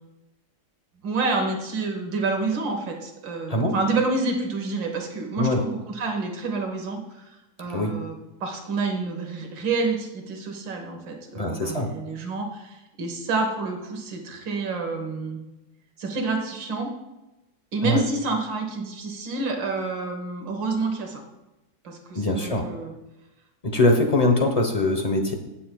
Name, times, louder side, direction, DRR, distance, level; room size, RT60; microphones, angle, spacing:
voice 1, 1.0-7.3 7.6-15.4 16.0-16.9 17.7-21.2 21.8-22.9, right 3 dB, 80° right, 3 dB, 2.1 m, -28 dB
voice 2, 11.3-11.9 17.8-18.0 22.1-22.6 23.6-25.3, left 1 dB, 35° left, 4 dB, 0.6 m, -22 dB
18.0 x 7.1 x 2.3 m, 0.99 s
omnidirectional pair, 2.0 m